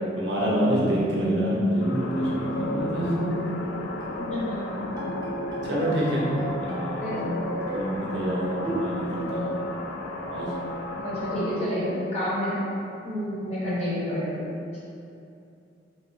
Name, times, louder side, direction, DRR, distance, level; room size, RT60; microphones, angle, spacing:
voice 1, 0.2-3.2 5.6-6.2 6.6-7.2 7.7-9.6 10.2-10.5, equal, 65° right, -5 dB, 0.6 m, -28 dB
Bowed string instrument, 0.6-3.7 4.0-4.2 4.6-4.7 5.0-6.9 7.2-8.0 8.6-9.2, equal, 20° right, 0.4 m, -30 dB
sound 1, 1.8-11.6, left 1 dB, 85° left, 0.3 m, -34 dB
voice 2, 4.3-5.1 7.0-7.3 11.0-12.6 13.0-14.5, equal, 35° left, -12 dB, 1.1 m, -29 dB
3.0 x 2.0 x 3.1 m, 2.7 s
head